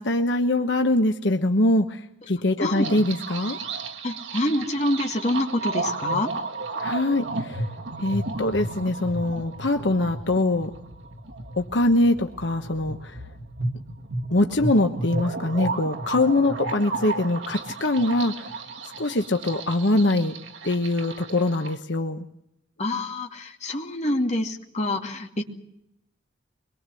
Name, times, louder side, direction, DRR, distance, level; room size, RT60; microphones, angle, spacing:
voice 1, 0.0-2.0 2.3-3.6 6.8-7.6 8.0-10.7 11.6-13.1 14.3-18.5 19.0-20.3 20.6-22.2, left 1 dB, 70° left, 5 dB, 1.2 m, -23 dB
voice 2, 2.6-2.9 4.0-6.3 22.8-25.4, left 1 dB, 40° left, 2 dB, 2.4 m, -26 dB
sound 1, 2.7-21.7, right 3 dB, 85° right, 2.1 m, -33 dB
24.0 x 22.0 x 7.7 m, 0.78 s
head